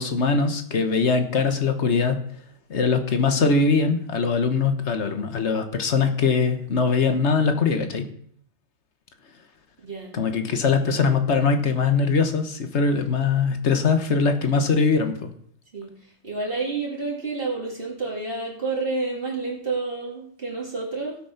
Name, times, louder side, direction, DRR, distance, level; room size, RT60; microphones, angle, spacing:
voice 1, 0.0-2.2 2.7-8.1 10.1-15.3, left 4 dB, 60° left, 7 dB, 1.6 m, -22 dB
voice 2, 9.8-10.1 15.7-21.2, right 3 dB, 45° right, -3 dB, 2.8 m, -29 dB
16.5 x 6.2 x 5.8 m, 0.64 s
omnidirectional pair, 1.4 m